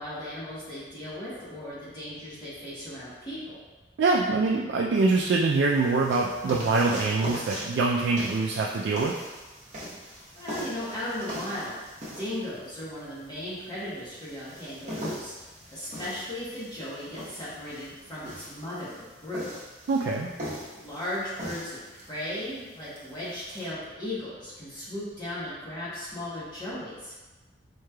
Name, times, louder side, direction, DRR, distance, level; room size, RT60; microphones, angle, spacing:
voice 1, 0.0-3.6 10.4-11.9 12.2-15.3 15.7-19.5 20.7-27.2, left 1 dB, 20° left, -10 dB, 1.0 m, -36 dB
voice 2, 4.0-9.1 19.9-20.3, right 3 dB, 75° right, -2 dB, 0.3 m, -24 dB
sound 1, 5.1-23.7, equal, 40° right, 1.0 m, -41 dB
4.7 x 3.1 x 2.2 m, 1.2 s
head